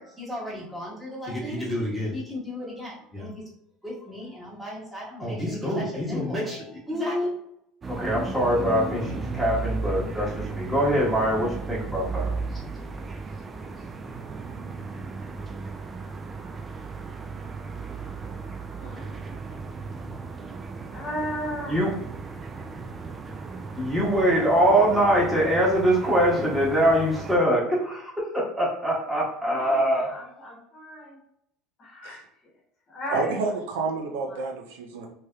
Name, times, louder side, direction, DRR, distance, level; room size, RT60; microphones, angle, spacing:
voice 1, 0.0-3.4 3.8-7.3 7.9-12.3 21.7-21.9 23.8-30.1, equal, 5° right, -6 dB, 1.3 m, -25 dB
sound 1, 7.8-27.4, right 4 dB, 25° right, 0.3 m, -35 dB
voice 2, 18.8-19.1 20.9-21.8 24.6-24.9 29.5-31.2 31.8-32.2 32.9-33.5 34.2-34.4, equal, 40° left, -2 dB, 0.9 m, -35 dB
voice 3, 33.1-35.1, right 4 dB, 85° right, 4 dB, 0.6 m, -29 dB
3.2 x 2.8 x 2.3 m, 0.75 s
supercardioid pair, 110°, 0 cm